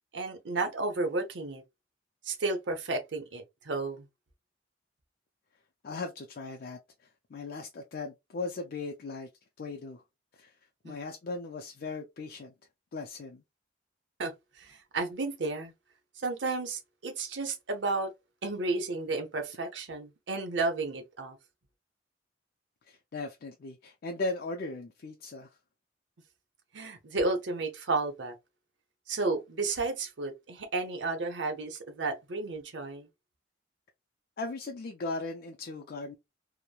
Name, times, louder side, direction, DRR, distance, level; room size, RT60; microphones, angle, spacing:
voice 1, 0.1-1.6 2.2-4.0 10.8-10.9 14.2-15.7 16.2-18.1 18.4-21.4 26.7-28.3 29.1-33.1, right 3 dB, 75° right, 0.7 m, -32 dB
voice 2, 5.8-9.3 9.6-10.0 10.4-10.5 10.8-12.5 12.9-13.4 22.9-25.5 34.4-36.2, left 3 dB, 55° left, 0.4 m, -38 dB
3.0 x 2.1 x 2.2 m
head